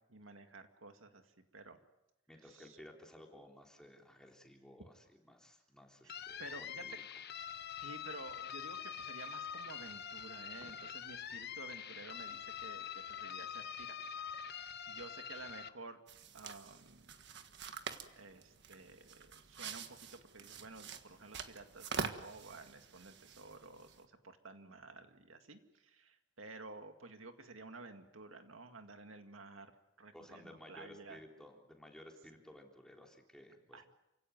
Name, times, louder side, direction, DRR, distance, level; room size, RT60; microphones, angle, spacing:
voice 1, 0.1-1.8 2.5-2.8 6.0-6.1 6.4-6.8 7.8-16.0 16.3-17.2 18.1-29.7 30.0-31.2 33.7-33.9, right 3 dB, 85° right, 6 dB, 2.1 m, -53 dB
voice 2, 2.3-6.9 30.1-33.9, left 1 dB, 5° left, 1 dB, 3.5 m, -56 dB
sound 1, 6.1-15.7, left 8 dB, 55° left, 1.0 m, -45 dB
sound 2, 16.1-24.0, right 5 dB, 60° right, 1.6 m, -46 dB
28.5 x 17.0 x 9.4 m, 0.93 s
head